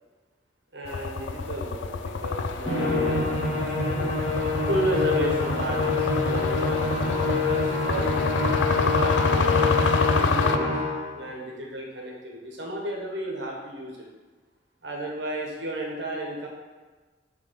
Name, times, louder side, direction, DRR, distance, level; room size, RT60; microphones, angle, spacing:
voice 1, 0.7-4.1 4.7-8.1 8.7-10.8 11.1-14.0 14.8-16.5, right 1 dB, 75° right, -1 dB, 1.4 m, -33 dB
sound 1, 0.9-10.6, left 4 dB, 85° left, 0.4 m, -28 dB
Musical instrument, 2.7-11.1, left 3 dB, 30° left, 1.7 m, -26 dB
6.3 x 3.5 x 5.2 m, 1.3 s
head